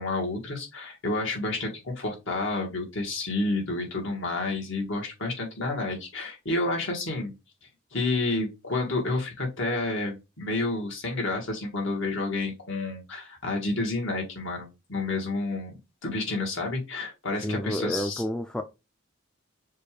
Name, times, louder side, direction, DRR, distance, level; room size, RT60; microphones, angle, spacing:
voice 1, 0.0-7.3 7.9-15.7 16.0-18.2, left 2 dB, 65° left, 0 dB, 1.8 m, -30 dB
voice 2, 17.4-18.6, equal, 5° left, 6 dB, 0.3 m, -29 dB
6.6 x 2.5 x 3.2 m, 0.25 s
head